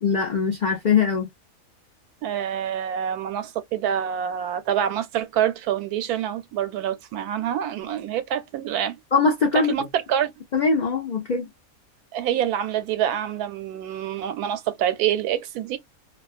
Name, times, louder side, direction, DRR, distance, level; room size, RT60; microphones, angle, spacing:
voice 1, 0.0-1.3 9.1-9.7 10.5-11.5, left 5 dB, 75° left, 0.4 m, -21 dB
voice 2, 2.2-9.0 9.5-10.3 12.1-15.8, right 10 dB, 90° right, 1.1 m, -26 dB
2.4 x 2.2 x 2.4 m
omnidirectional pair, 1.6 m